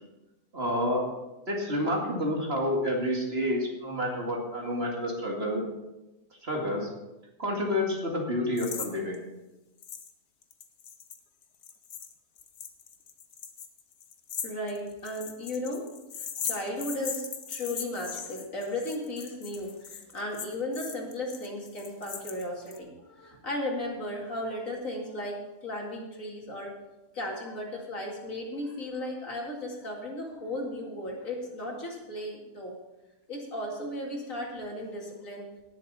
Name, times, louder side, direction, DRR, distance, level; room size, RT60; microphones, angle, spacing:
voice 1, 0.5-1.0 1.5-5.6 6.4-6.9 7.4-9.2, left 1 dB, 40° right, -1 dB, 2.4 m, -29 dB
sound 1, 8.6-8.9 9.1-9.2 9.8-10.1 10.4-22.8, left 7 dB, 85° left, 1.6 m, -39 dB
voice 2, 14.4-15.9 16.2-26.8 27.1-32.8 33.3-35.5, left 1 dB, 55° left, -1 dB, 2.7 m, -35 dB
19.0 x 7.2 x 4.2 m, 1.0 s
omnidirectional pair, 1.6 m